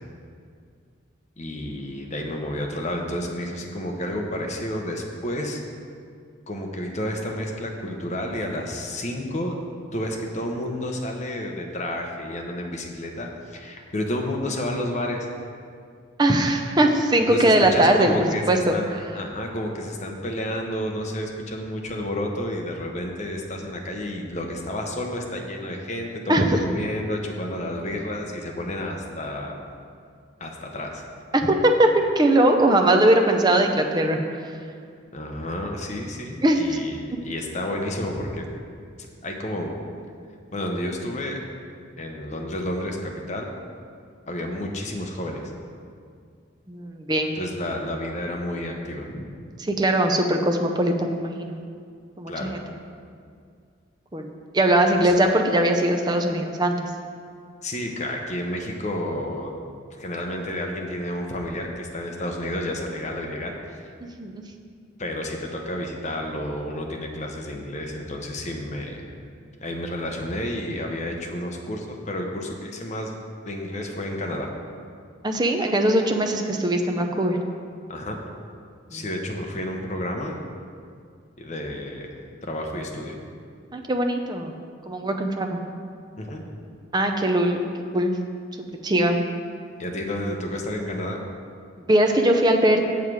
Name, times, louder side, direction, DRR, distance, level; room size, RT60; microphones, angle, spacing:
voice 1, 1.4-5.6 6.5-9.5 9.9-15.3 17.2-29.6 30.4-31.0 35.1-38.5 39.2-39.7 40.5-41.4 42.0-43.5 44.3-45.4 47.3-49.3 52.3-52.5 55.0-55.1 57.6-59.5 60.0-63.8 65.0-69.0 69.6-73.1 73.5-74.5 77.9-78.2 78.9-80.4 81.4-82.2 82.5-83.2 86.2-86.4 89.8-91.2, left 1 dB, 35° left, 1 dB, 0.9 m, -30 dB
voice 2, 16.2-18.7 26.3-26.6 31.3-34.2 36.4-36.6 46.7-47.4 49.7-51.5 52.2-52.6 54.1-56.8 64.0-64.4 75.2-77.4 78.9-79.0 83.7-84.5 84.9-85.6 86.9-87.6 87.9-88.1 88.8-89.2 91.9-92.8, right 1 dB, 20° right, 4 dB, 0.6 m, -20 dB
7.3 x 7.3 x 4.7 m, 2.2 s
head